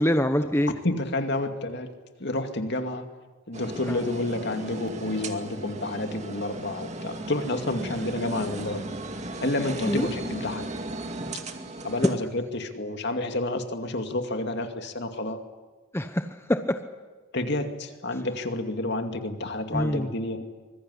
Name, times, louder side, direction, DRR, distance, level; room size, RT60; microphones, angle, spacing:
voice 1, 0.0-0.7 3.9-4.0 9.9-10.1 12.0-12.1 15.9-16.8 19.7-20.1, equal, 10° left, 7 dB, 0.9 m, -24 dB
voice 2, 0.8-1.9 2.2-3.1 3.5-8.9 9.4-10.7 11.8-15.4 17.3-20.5, left 2 dB, 55° left, 6 dB, 2.4 m, -29 dB
sound 1, 3.5-12.1, right 2 dB, 35° right, 2.3 m, -36 dB
25.0 x 21.5 x 9.9 m, 1.3 s
head